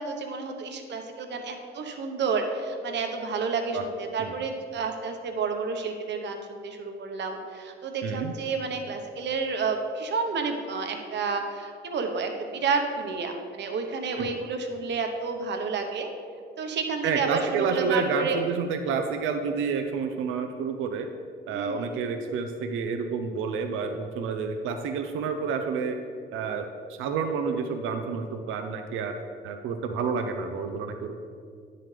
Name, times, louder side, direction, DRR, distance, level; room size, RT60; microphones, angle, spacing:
voice 1, 0.0-16.1 16.6-18.4 21.5-21.9, right 4 dB, 65° right, 4 dB, 1.1 m, -30 dB
voice 2, 8.0-8.3 14.2-14.3 17.0-21.1 21.5-26.0 26.3-26.7 27.0-29.1 29.4-31.2, right 5 dB, 85° right, 5 dB, 0.6 m, -29 dB
10.0 x 7.7 x 3.3 m, 2.2 s
cardioid pair, 90°, 20 cm